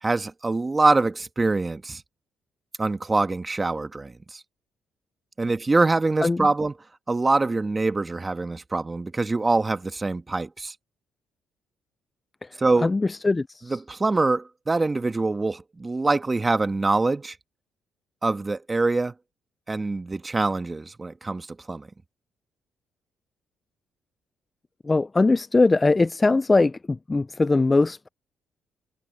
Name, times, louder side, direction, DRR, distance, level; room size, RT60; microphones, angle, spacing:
voice 1, 0.0-2.0 2.8-4.4 5.4-6.7 7.1-10.7 12.6-12.9 13.7-17.4 18.2-19.1 19.7-21.9, right 3 dB, 20° right, 1.9 m, -24 dB
voice 2, 12.8-13.8 24.8-28.1, left 3 dB, 20° left, 0.4 m, -21 dB
cardioid pair, 90°, 0 cm